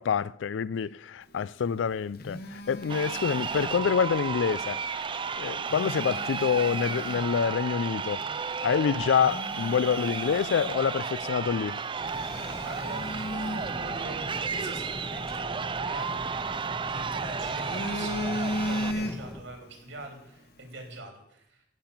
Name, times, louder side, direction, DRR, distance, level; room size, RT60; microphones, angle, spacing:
voice 1, 0.0-4.8 5.4-8.3 8.6-11.8, left 6 dB, 80° left, 0.4 m, -27 dB
Telephone, 1.7-4.2 5.5-7.4 8.0-8.2 8.7-8.8 9.2-11.2 11.5-11.6 12.1-14.5 16.0-17.0 17.4-19.5 19.8-20.1, left 1 dB, 55° left, 1.3 m, -37 dB
Crowd, 2.8-18.9, right 5 dB, 25° right, 0.4 m, -33 dB
sound 1, 12.0-19.4, left 1 dB, 5° left, 0.9 m, -41 dB
voice 2, 12.6-21.6, right 2 dB, 80° right, 3.5 m, -43 dB
14.5 x 5.9 x 8.6 m
head